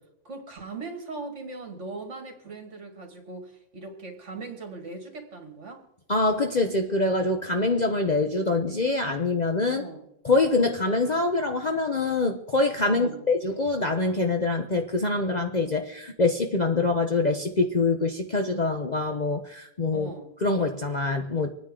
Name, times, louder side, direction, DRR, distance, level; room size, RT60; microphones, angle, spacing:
voice 1, 0.2-5.9 9.7-10.1 12.9-13.2 19.9-20.3, right 3 dB, 55° right, 2.5 m, -39 dB
voice 2, 6.1-9.9 10.2-20.1 20.4-21.5, left 3 dB, 35° left, 0.8 m, -25 dB
26.0 x 9.6 x 3.8 m
omnidirectional pair, 1.5 m